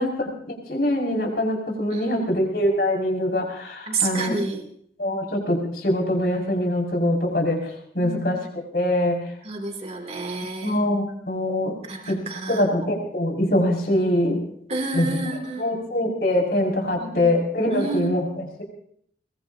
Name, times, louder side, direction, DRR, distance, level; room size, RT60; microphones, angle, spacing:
voice 1, 0.0-4.3 5.0-8.4 8.7-9.2 10.6-11.7 12.1-12.2 12.5-14.4 14.9-15.1 15.6-18.6, left 1 dB, 60° left, 0 dB, 5.9 m, -23 dB
voice 2, 1.9-2.3 3.9-4.6 8.0-8.5 9.4-10.8 11.8-12.6 14.7-15.8 17.0-17.2 17.7-18.2, right 3 dB, 35° right, 4 dB, 2.9 m, -30 dB
22.5 x 22.0 x 2.8 m, 0.63 s
head